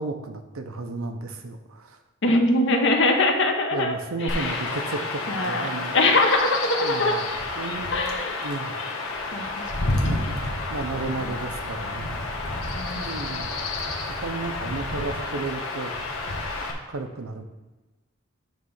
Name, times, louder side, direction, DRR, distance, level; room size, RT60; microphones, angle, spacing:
voice 1, 0.0-2.0 3.7-6.0 6.8-7.2 7.6-7.9 8.4-8.7 10.0-12.2 12.9-13.5 14.2-15.9 16.9-17.4, right 3 dB, 80° right, 6 dB, 0.7 m, -33 dB
voice 2, 2.2-4.7 5.3-5.7 5.9-7.2 7.9-8.4 9.3-10.0 10.4-10.5 12.7-13.4, left 2 dB, 65° left, 4 dB, 0.9 m, -23 dB
Chirp tweet / Wind / Stream, 4.3-16.7, left 2 dB, 90° left, 1.2 m, -30 dB
9.1 x 3.3 x 5.5 m, 1.2 s
head